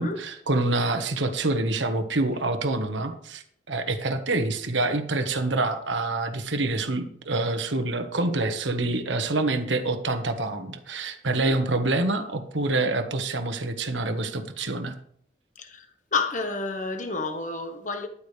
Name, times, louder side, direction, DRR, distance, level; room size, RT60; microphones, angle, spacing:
voice 1, 0.0-15.0, right 2 dB, 90° right, 1.4 m, -26 dB
voice 2, 16.1-18.1, left 4 dB, 45° left, 1.4 m, -29 dB
13.0 x 11.5 x 3.4 m
head